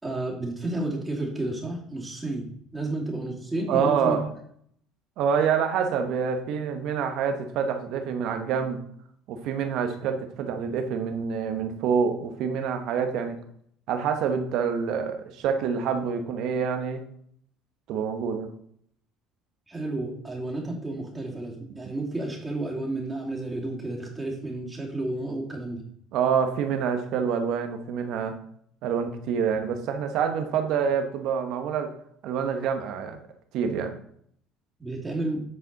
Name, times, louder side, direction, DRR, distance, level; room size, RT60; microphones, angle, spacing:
voice 1, 0.0-4.2 19.7-25.8 34.8-35.4, right 2 dB, 15° right, -2 dB, 2.5 m, -31 dB
voice 2, 3.7-4.3 5.2-8.8 9.3-13.4 13.9-17.0 17.9-18.5 26.1-28.3 28.8-31.9 32.2-33.2 33.5-33.9, right 7 dB, 65° right, 6 dB, 1.1 m, -27 dB
8.9 x 4.3 x 4.0 m, 0.66 s
supercardioid pair, 90°, 0 cm